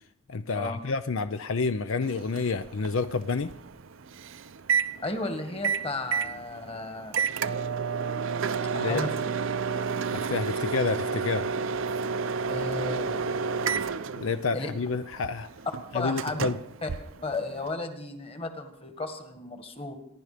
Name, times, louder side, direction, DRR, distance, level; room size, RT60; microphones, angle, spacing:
voice 1, 0.3-3.5 8.8-9.0 10.1-11.5 14.2-15.5 15.9-16.6, left 4 dB, 65° left, 11 dB, 0.6 m, -29 dB
Microwave oven, 2.0-17.7, right 5 dB, 60° right, 0.6 m, -31 dB
voice 2, 5.0-7.2 8.7-9.1 12.5-13.6 14.5-14.7 15.9-16.4 16.8-16.9 17.2-20.0, left 2 dB, 25° left, 7 dB, 1.7 m, -34 dB
26.0 x 11.0 x 5.1 m, 0.77 s
head